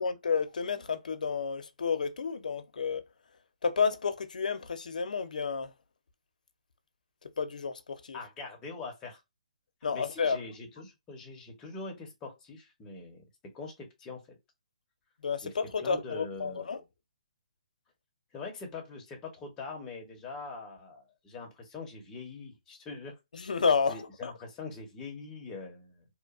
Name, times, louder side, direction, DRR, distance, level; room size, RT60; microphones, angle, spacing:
voice 1, 0.0-3.0 3.6-5.7 7.2-8.2 9.8-10.4 15.2-16.8 23.3-24.3, left 5 dB, 80° left, 0.5 m, -31 dB
voice 2, 8.1-9.2 9.9-13.2 13.5-14.4 15.4-15.5 15.8-16.7 18.3-23.1 23.9-26.0, left 3 dB, 15° left, 0.7 m, -43 dB
2.9 x 2.2 x 2.3 m
hypercardioid pair, 165°, 4 cm